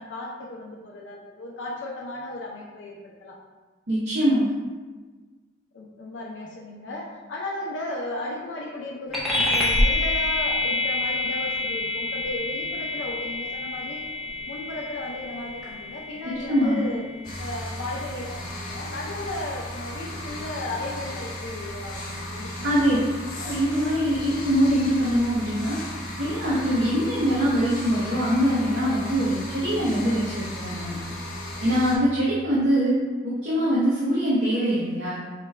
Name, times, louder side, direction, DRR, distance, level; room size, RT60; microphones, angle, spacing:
voice 1, 0.0-3.4 5.7-14.1 14.5-17.0 17.4-23.0, left 2 dB, 75° left, -2 dB, 0.5 m, -35 dB
voice 2, 3.9-4.5 16.2-16.9 22.6-23.0 23.4-25.8 26.2-31.0 31.6-33.0 33.2-35.2, equal, 60° right, -8 dB, 0.7 m, -23 dB
sound 1, 9.1-19.0, left 2 dB, ahead, 0.5 m, -28 dB
sound 2, 17.2-32.0, left 1 dB, 50° left, 0.9 m, -35 dB
4.8 x 2.2 x 3.1 m, 1.3 s
head